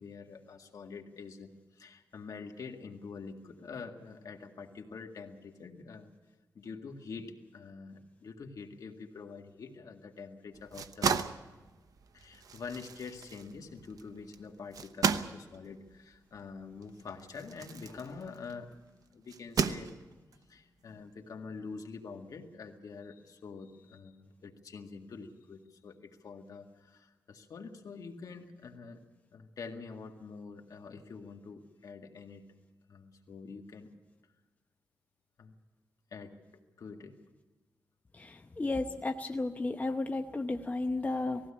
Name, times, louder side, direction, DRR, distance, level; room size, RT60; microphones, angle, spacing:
voice 1, 0.0-6.1 6.6-11.2 12.1-18.7 19.1-20.0 20.3-29.0 29.3-32.5 32.9-33.9 35.4-35.5 36.1-37.2, left 5 dB, 70° left, 3 dB, 1.9 m, -46 dB
sound 1, 10.5-18.6 19.3-20.3, right 6 dB, 70° right, 0.8 m, -35 dB
voice 2, 38.2-41.4, left 2 dB, 25° left, 5 dB, 0.9 m, -33 dB
19.5 x 15.5 x 8.6 m, 1.2 s
wide cardioid pair, 100°, 6 cm